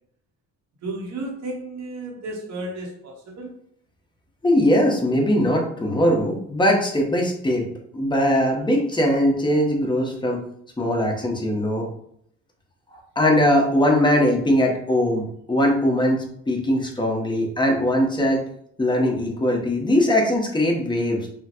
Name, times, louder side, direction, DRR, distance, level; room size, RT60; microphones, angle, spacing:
voice 1, 0.8-3.5, right 2 dB, 65° right, 0 dB, 1.0 m, -33 dB
voice 2, 4.4-7.7 7.9-10.4 10.8-11.9 12.9-18.4 18.8-21.3, left 1 dB, 15° left, 0 dB, 1.1 m, -21 dB
5.5 x 2.2 x 3.0 m, 0.68 s
cardioid pair, 90°, 30 cm